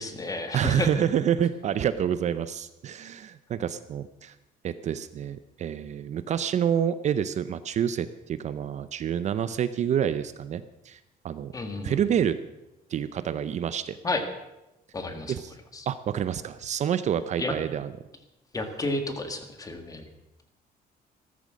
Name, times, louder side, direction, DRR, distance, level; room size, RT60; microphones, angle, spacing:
voice 1, 0.0-0.9 11.5-12.0 14.0-14.2 14.9-15.3 15.7-15.9 17.4-17.5 18.5-20.1, left 2 dB, 20° left, 7 dB, 1.8 m, -31 dB
voice 2, 0.5-4.3 4.6-11.0 11.2-11.5 11.8-12.4 12.9-14.0 15.3-15.5 15.9-17.9, right 9 dB, 45° right, 13 dB, 0.6 m, -28 dB
14.5 x 13.5 x 6.3 m, 0.94 s
cardioid pair, 165°, 16 cm